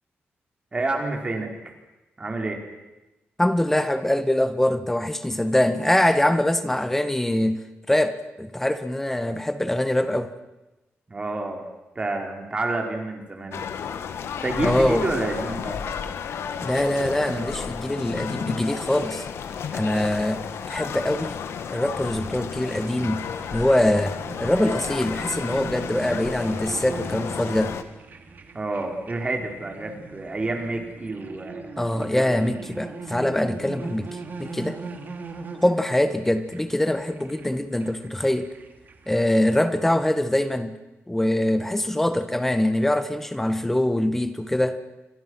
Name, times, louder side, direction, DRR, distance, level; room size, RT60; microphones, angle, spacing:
voice 1, 0.7-1.5 2.2-2.6 11.1-11.7 12.0-13.6 14.4-15.8 28.5-31.7 32.1-32.9 39.7-39.8, right 2 dB, 25° right, 3 dB, 4.0 m, -29 dB
voice 2, 3.4-7.6 7.9-10.3 14.6-15.1 16.6-19.2 19.7-20.4 20.7-21.4 21.7-23.2 23.5-27.7 31.8-34.1 34.4-34.8 35.6-38.5 39.1-40.7 41.1-44.8, left 1 dB, 5° left, 10 dB, 1.5 m, -23 dB
sound 1, 13.5-27.8, left 7 dB, 75° left, 1.8 m, -32 dB
sound 2, 22.6-39.2, right 4 dB, 45° right, 3.0 m, -40 dB
29.5 x 24.5 x 6.2 m, 1.0 s
wide cardioid pair, 165°, 4 cm